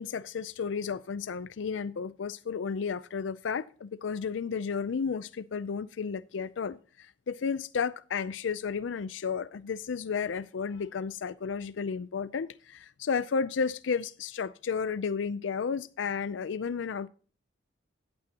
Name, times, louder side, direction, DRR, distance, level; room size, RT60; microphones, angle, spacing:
voice 1, 0.0-17.1, left 6 dB, 90° left, 0.4 m, -33 dB
16.0 x 8.6 x 2.9 m
head